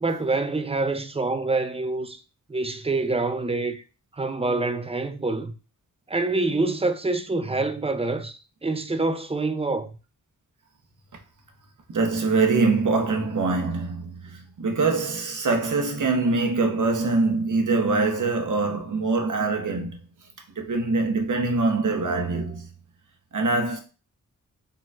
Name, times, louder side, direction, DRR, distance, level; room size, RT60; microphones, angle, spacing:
voice 1, 0.0-2.2 2.5-3.8 4.1-5.5 6.1-9.9, right 3 dB, 20° right, 0.5 m, -26 dB
voice 2, 11.9-22.7 23.3-23.8, right 3 dB, 65° right, 0.9 m, -24 dB
4.3 x 3.9 x 2.4 m
wide cardioid pair, 80°, 33 cm